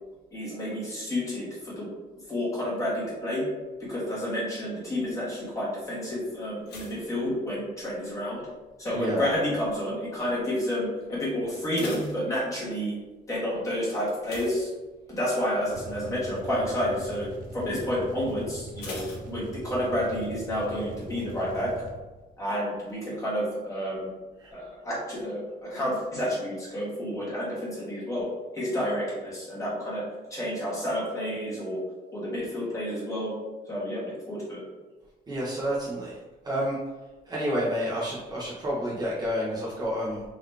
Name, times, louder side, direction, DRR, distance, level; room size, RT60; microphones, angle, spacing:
voice 1, 0.3-1.9 2.3-3.4 3.8-8.4 8.8-12.9 13.3-14.7 15.1-21.7 22.4-24.1 24.5-28.2 28.5-30.0 30.3-31.8 32.1-33.4 33.7-34.6, equal, 20° left, -7 dB, 1.5 m, -30 dB
sound 1, 6.6-8.1 8.4-8.9 9.5-9.9 10.1-10.2 10.6-10.7 11.4-12.9 14.2-15.3 15.7-16.0 16.3-16.4 18.8-20.0 20.2-20.3, left 2 dB, 75° left, 1.2 m, -42 dB
voice 2, 8.9-9.3 24.4-24.5 35.3-36.1 36.4-36.8 37.3-40.2, equal, 25° right, -7 dB, 0.9 m, -29 dB
sound 2, 15.6-22.2, right 2 dB, 55° right, 0.7 m, -42 dB
3.9 x 3.0 x 3.3 m, 1.2 s
cardioid pair, 160°, 17 cm